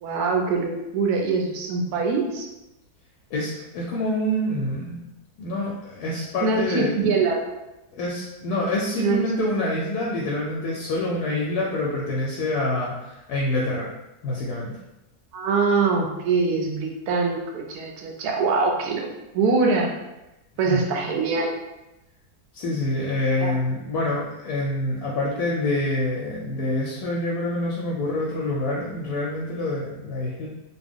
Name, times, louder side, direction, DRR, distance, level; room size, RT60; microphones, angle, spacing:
voice 1, 0.0-2.5 6.4-7.4 9.0-9.2 15.3-19.1 19.3-19.9 20.6-21.5 23.4-23.6, right 4 dB, 75° right, 1 dB, 1.1 m, -23 dB
voice 2, 3.3-5.0 5.4-7.0 7.9-13.9 14.2-14.8 20.7-20.8 22.5-30.5, left 1 dB, 75° left, -3 dB, 1.1 m, -26 dB
3.0 x 2.2 x 3.5 m, 0.96 s
omnidirectional pair, 1.7 m